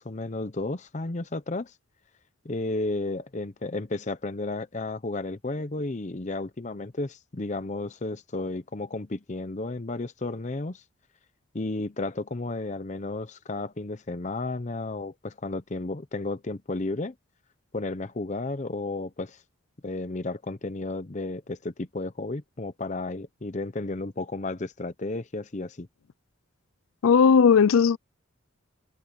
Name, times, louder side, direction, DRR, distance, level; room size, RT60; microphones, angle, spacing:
voice 1, 0.0-1.7 2.4-10.8 11.5-17.1 17.7-19.4 19.8-25.9, left 2 dB, 35° left, 0.7 m, -33 dB
voice 2, 27.0-28.0, left 6 dB, 90° left, 0.4 m, -17 dB
head